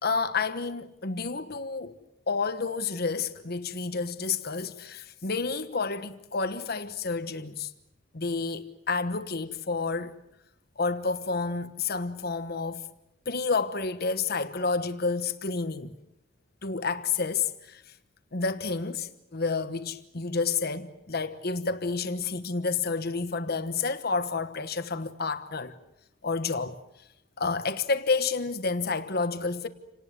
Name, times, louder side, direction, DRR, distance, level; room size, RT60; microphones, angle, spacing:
voice 1, 0.0-2.0 2.3-7.7 8.1-10.1 10.8-12.9 13.3-15.9 16.6-17.9 18.3-25.8 26.2-26.8 27.4-29.7, left 4 dB, 55° left, 1.2 m, -30 dB
28.5 x 18.5 x 9.5 m
head